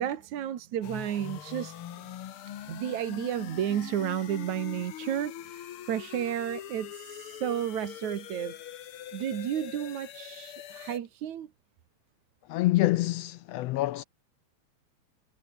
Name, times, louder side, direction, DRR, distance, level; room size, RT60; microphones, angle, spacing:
voice 1, 0.0-1.8 2.7-8.5 9.1-11.5, right 10 dB, 75° right, 3.0 m, -32 dB
sound 1, 0.8-11.0, left 11 dB, 60° left, 1.7 m, -43 dB
voice 2, 12.5-14.0, left 17 dB, 80° left, 1.5 m, -26 dB
omnidirectional pair, 3.3 m